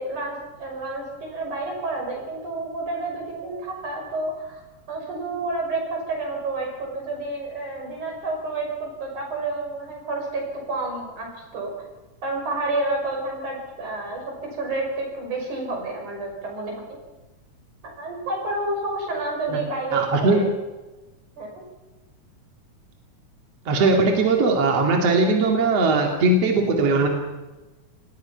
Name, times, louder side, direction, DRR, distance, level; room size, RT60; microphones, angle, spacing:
voice 1, 0.0-4.5 4.9-11.7 12.2-14.2 14.5-17.0 18.0-20.5 21.4-21.5, right 2 dB, 75° right, 0 dB, 7.6 m, -29 dB
voice 2, 19.9-20.4 23.7-27.1, right 3 dB, 55° right, 2 dB, 3.4 m, -19 dB
27.0 x 20.0 x 5.9 m, 1.1 s
omnidirectional pair, 3.5 m